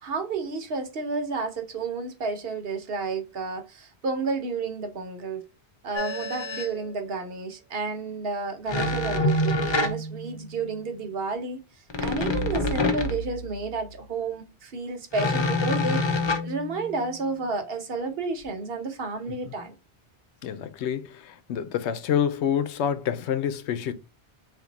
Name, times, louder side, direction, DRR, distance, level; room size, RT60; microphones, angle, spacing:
voice 1, 0.0-5.4 5.8-11.6 12.0-19.7, right 4 dB, 65° right, 1.0 m, -31 dB
sound 1, 6.0-6.8 8.7-10.6 11.9-13.7 15.1-17.1, left 2 dB, 40° left, 0.4 m, -27 dB
voice 2, 20.4-23.9, left 9 dB, 90° left, 0.9 m, -27 dB
3.6 x 2.6 x 3.9 m
omnidirectional pair, 1.1 m